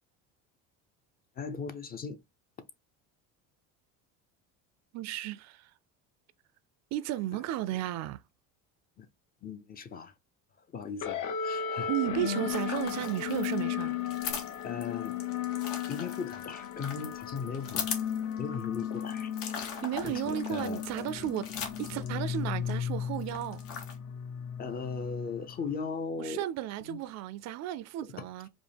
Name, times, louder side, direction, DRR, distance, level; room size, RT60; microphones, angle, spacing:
voice 1, 1.4-2.2 9.0-9.1 9.4-10.1 10.6-11.9 14.6-15.2 15.9-17.9 18.4-19.3 20.0-20.8 24.6-26.4 26.8-27.0 28.2-28.3, left 5 dB, 30° left, 0.5 m, -38 dB
voice 2, 4.9-5.7 6.9-8.2 11.9-14.0 19.8-21.5 21.8-23.6 26.2-28.5, right 13 dB, 55° right, 0.4 m, -34 dB
sound 1, 11.0-25.8, left 8 dB, 60° left, 0.8 m, -35 dB
sound 2, 12.5-22.7 23.1-24.0, left 6 dB, 75° left, 1.5 m, -41 dB
5.0 x 2.0 x 3.3 m
cardioid pair, 130°, 34 cm